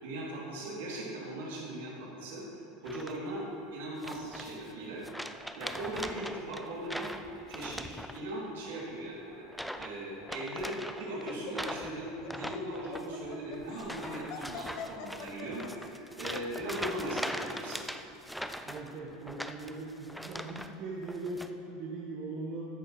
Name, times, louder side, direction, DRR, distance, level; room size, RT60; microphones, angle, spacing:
voice 1, 0.0-2.4 2.8-3.4 3.7-7.1 7.5-9.5 9.7-10.7 11.0-17.8, right 1 dB, 65° right, -5 dB, 2.9 m, -39 dB
sound 1, 2.8-3.4 4.0-4.7 5.0-8.5 8.7-9.1 9.5-9.9 10.2-20.7 21.0-21.5, equal, ahead, 0.5 m, -41 dB
Laughter, 10.6-15.9, left 8 dB, 50° left, 0.8 m, -45 dB
voice 2, 18.6-22.7, right 2 dB, 50° right, -4 dB, 1.5 m, -40 dB
14.0 x 10.5 x 3.2 m, 2.9 s
figure-of-eight pair, 80°, 0 cm